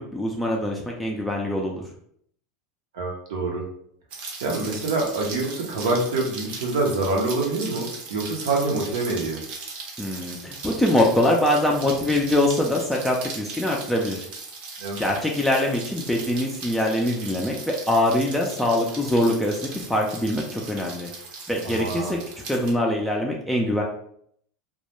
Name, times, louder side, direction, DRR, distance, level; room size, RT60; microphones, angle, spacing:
voice 1, 0.0-1.8 10.0-14.3 15.0-21.1 21.5-22.2 22.5-23.8, left 1 dB, 5° left, -2 dB, 0.3 m, -23 dB
voice 2, 2.9-3.6 4.4-9.4 14.8-15.0 21.6-22.2, right 3 dB, 85° right, 0 dB, 0.8 m, -26 dB
Rain, 4.1-22.7, right 4 dB, 45° right, 0.6 m, -38 dB
2.3 x 2.1 x 2.9 m, 0.67 s
supercardioid pair, 130°, 3 cm